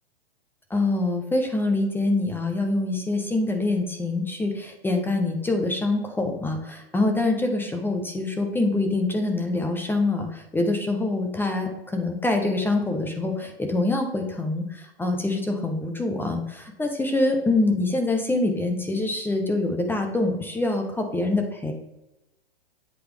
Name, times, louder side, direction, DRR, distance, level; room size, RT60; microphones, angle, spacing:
voice 1, 0.7-21.7, left 2 dB, 5° left, 4 dB, 0.6 m, -25 dB
8.2 x 4.6 x 3.4 m, 0.94 s
hypercardioid pair, 120°, 31 cm